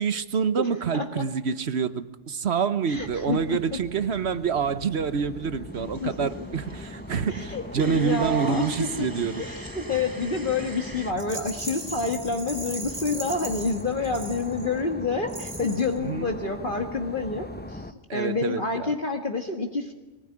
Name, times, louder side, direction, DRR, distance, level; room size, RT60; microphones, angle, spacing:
voice 1, 0.0-9.4 16.0-16.3 18.1-18.9, right 6 dB, 60° right, 12 dB, 1.3 m, -27 dB
voice 2, 0.9-1.2 2.9-3.8 6.0-6.5 7.3-9.1 9.4-17.8 18.1-19.9, left 3 dB, 40° left, 3 dB, 1.8 m, -28 dB
sound 1, 2.9-17.9, left 1 dB, 10° left, 0.8 m, -40 dB
sound 2, 5.7-11.1, right 2 dB, 20° right, 0.9 m, -45 dB
Rattle, 11.2-14.8 15.3-16.0, right 2 dB, 40° right, 2.2 m, -38 dB
23.0 x 19.0 x 9.9 m, 1.1 s
omnidirectional pair, 1.3 m